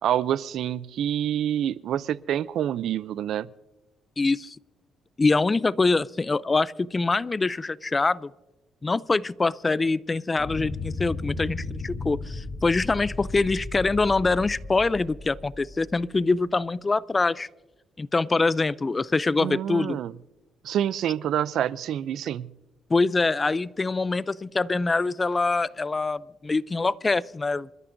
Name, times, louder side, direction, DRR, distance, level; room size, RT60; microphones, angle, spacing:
voice 1, 0.0-3.5 19.4-20.1 20.6-22.5, right 10 dB, 75° right, 19 dB, 0.4 m, -27 dB
voice 2, 4.2-4.6 5.2-8.3 8.8-17.5 18.0-20.0 22.9-27.7, left 3 dB, 25° left, 20 dB, 0.4 m, -24 dB
sound 1, 10.4-16.1, left 3 dB, 55° left, 3.5 m, -35 dB
27.0 x 13.5 x 2.6 m, 1.1 s
cardioid pair, 90°, 0 cm